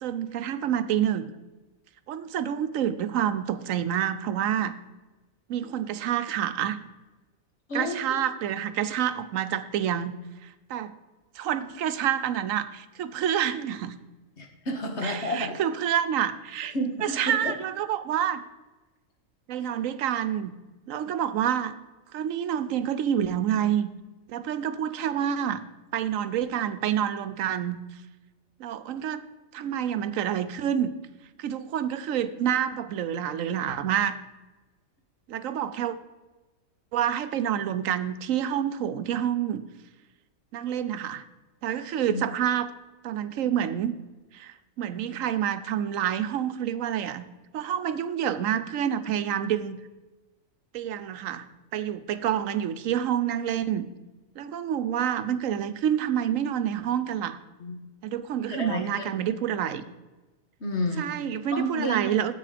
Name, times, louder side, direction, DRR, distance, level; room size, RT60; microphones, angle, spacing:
voice 1, 0.0-1.3 2.1-4.8 5.5-6.8 7.7-10.1 10.4-10.9 11.4-13.9 15.0-16.7 17.0-18.4 19.5-20.5 20.9-21.7 22.1-23.9 24.3-25.6 25.9-27.8 28.6-29.2 29.5-30.9 31.4-34.1 35.3-36.0 36.9-39.6 40.5-41.2 41.6-42.7 43.0-43.9 44.3-47.3 47.5-49.8 50.7-51.4 51.7-53.8 54.4-57.4 58.0-59.8 61.0-62.3, right 9 dB, 75° right, 12 dB, 1.0 m, -28 dB
voice 2, 14.4-15.6 16.7-17.5 42.1-42.2 57.6-57.8 58.5-59.0 60.6-61.1 61.5-62.1, equal, 55° left, 2 dB, 1.8 m, -30 dB
9.4 x 7.8 x 5.0 m, 1.1 s
omnidirectional pair, 1.4 m